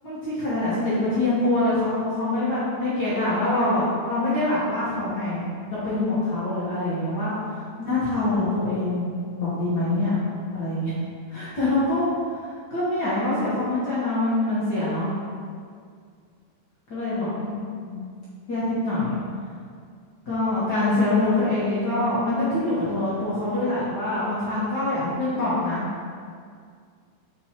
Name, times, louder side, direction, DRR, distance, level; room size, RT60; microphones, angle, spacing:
voice 1, 0.0-5.4 5.7-7.3 7.9-9.1 9.3-10.2 10.5-10.9 11.3-15.1 16.9-17.5 17.8-18.0 18.5-19.2 20.3-25.8, left 2 dB, 80° left, -10 dB, 0.9 m, -24 dB
5.3 x 4.5 x 4.3 m, 2.1 s
omnidirectional pair, 4.0 m